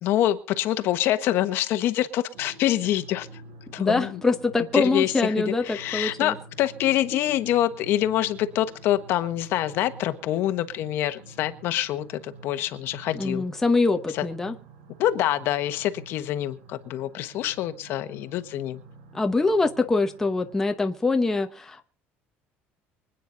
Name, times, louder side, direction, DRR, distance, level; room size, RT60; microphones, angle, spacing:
voice 1, 0.0-3.3 3.7-4.2 4.7-13.4 14.1-14.2 15.0-18.8, left 13 dB, 55° left, 1.3 m, -26 dB
sound 1, 2.3-20.8, right 3 dB, 85° right, 5.2 m, -48 dB
voice 2, 3.8-6.4 13.1-14.5 19.1-21.8, left 3 dB, 10° left, 1.1 m, -24 dB
25.5 x 9.3 x 4.0 m
cardioid pair, 170°, 5 cm